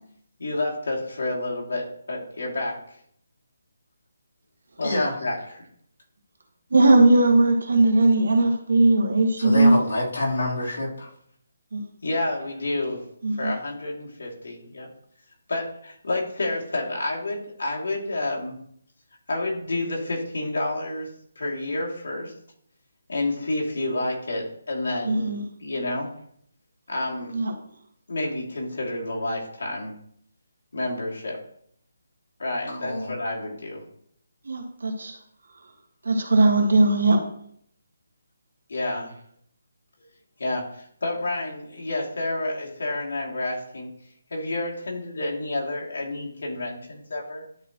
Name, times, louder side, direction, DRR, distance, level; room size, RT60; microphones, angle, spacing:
voice 1, 0.4-2.8 4.8-4.9 5.2-5.4 12.0-13.0 13.4-14.9 15.5-18.6 19.3-21.1 21.4-22.3 23.1-25.3 25.6-26.1 26.9-27.3 28.1-29.9 30.7-31.4 32.4-33.8 38.7-39.1 40.4-43.9 44.3-47.4, left 2 dB, 70° left, -2 dB, 2.6 m, -29 dB
voice 2, 4.8-5.2 9.4-11.1 32.7-33.1, left 2 dB, 90° left, -5 dB, 3.3 m, -27 dB
voice 3, 6.7-9.8 11.7-11.8 13.2-13.5 25.0-25.4 27.3-27.5 34.4-35.1 36.0-37.2, right 2 dB, 75° right, 4 dB, 1.6 m, -19 dB
11.5 x 4.4 x 3.0 m, 0.66 s
hypercardioid pair, 175°, 0 cm